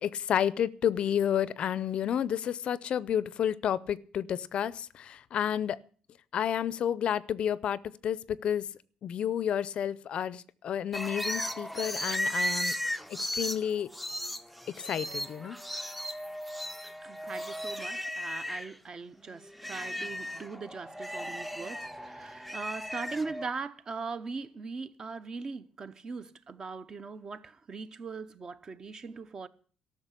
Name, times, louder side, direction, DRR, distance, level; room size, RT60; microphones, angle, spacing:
voice 1, 0.0-5.8 6.3-8.7 9.0-12.8 13.1-13.9 14.8-15.6, left 9 dB, 50° left, 0.5 m, -30 dB
sound 1, 10.9-18.8 19.2-23.5, equal, ahead, 0.5 m, -36 dB
voice 2, 17.0-29.5, right 4 dB, 30° right, 0.8 m, -40 dB
13.5 x 6.4 x 9.8 m
cardioid pair, 130°, 2 cm